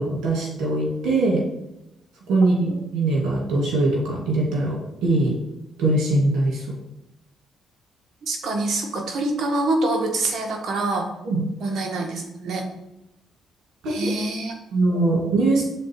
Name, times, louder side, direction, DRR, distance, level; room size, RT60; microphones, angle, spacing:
voice 1, 0.0-1.4 2.3-4.7 5.0-5.3 5.8-6.8 11.2-11.4 13.8-14.1 14.7-15.6, right 2 dB, 85° right, -2 dB, 2.1 m, -21 dB
voice 2, 8.2-11.1 11.6-12.6 13.8-14.5, right 2 dB, 65° right, 2 dB, 1.3 m, -25 dB
6.6 x 3.8 x 4.5 m, 0.88 s
cardioid pair, 90°, 0 cm